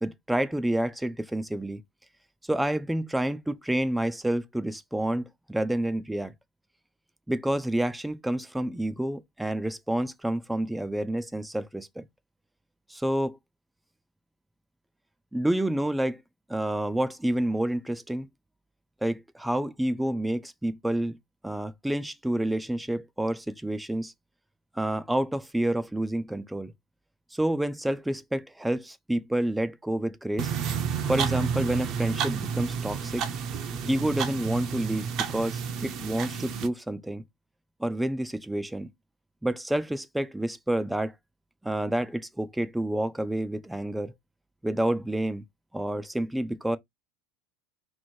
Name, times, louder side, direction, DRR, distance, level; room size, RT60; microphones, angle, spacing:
voice 1, 0.0-1.8 2.5-6.3 7.3-12.0 12.9-13.4 15.3-16.2 16.5-18.3 19.0-21.2 21.4-24.1 24.8-26.7 27.3-30.5 31.1-33.3 33.9-37.2 37.8-38.9 39.4-41.2 41.6-44.1 44.6-45.4 45.7-46.8, right 1 dB, 5° right, 0.4 m, -29 dB
sound 1, 30.4-36.7, right 7 dB, 40° right, 0.6 m, -30 dB
3.0 x 2.5 x 4.4 m
supercardioid pair, 140°, 0 cm